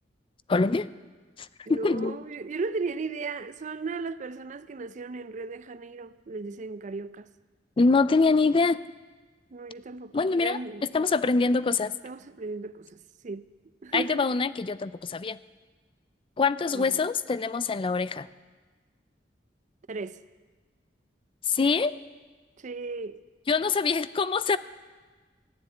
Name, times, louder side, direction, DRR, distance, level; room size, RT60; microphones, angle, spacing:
voice 1, 0.5-0.9 1.4-2.2 7.8-8.8 10.1-10.6 10.9-11.9 13.9-15.4 16.4-18.3 21.5-22.0 23.5-24.6, left 4 dB, 30° left, 0.4 m, -24 dB
voice 2, 1.7-7.3 9.5-10.8 12.0-13.5 13.8-14.3 16.7-17.0 19.9-20.2 22.6-23.2, right 4 dB, 45° right, 0.5 m, -36 dB
15.0 x 7.4 x 9.5 m
head